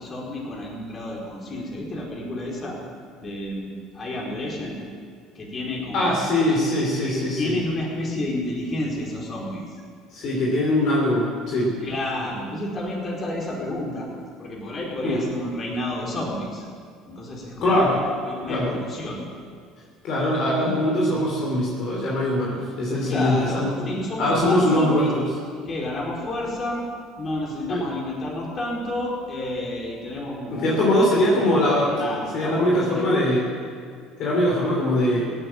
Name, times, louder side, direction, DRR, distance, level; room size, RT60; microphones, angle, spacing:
voice 1, 0.0-2.8 3.2-4.8 5.3-6.3 7.0-9.8 11.8-14.1 14.4-16.6 17.1-18.0 18.2-19.2 23.0-25.1 25.7-26.8 27.2-31.2 31.6-33.2, left 1 dB, 40° left, -2 dB, 4.6 m, -30 dB
voice 2, 5.9-7.6 10.1-11.8 15.0-15.2 17.6-18.0 18.5-18.7 20.0-23.9 24.2-25.3 27.7-27.9 30.5-31.9 32.3-33.5 34.2-35.2, left 1 dB, 60° left, -3 dB, 3.4 m, -22 dB
17.0 x 9.3 x 7.3 m, 2.1 s
hypercardioid pair, 65°, 0 cm